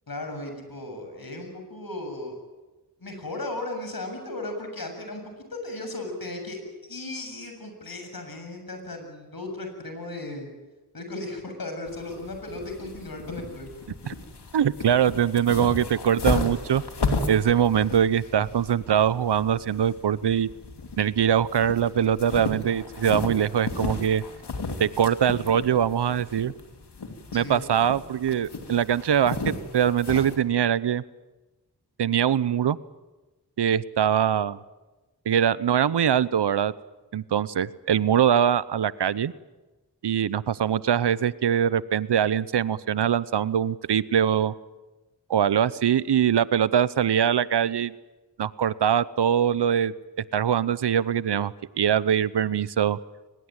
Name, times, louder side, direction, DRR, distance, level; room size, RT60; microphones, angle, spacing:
voice 1, 0.1-2.4 3.0-5.2 5.5-6.6 6.9-10.5 10.9-13.7 27.4-27.6, left 2 dB, 60° left, 5 dB, 7.4 m, -36 dB
sound 1, 11.9-30.4, left 3 dB, 80° left, 2.8 m, -34 dB
voice 2, 14.5-16.8 17.3-20.5 21.0-24.2 24.8-26.5 27.3-31.0 32.0-32.8 33.6-34.6 35.3-36.7 37.1-39.3 40.0-44.5 45.3-47.9 48.4-49.9 50.3-53.0, right 9 dB, 80° right, 18 dB, 0.8 m, -23 dB
23.0 x 21.0 x 9.0 m, 1.1 s
cardioid pair, 40°, 40 cm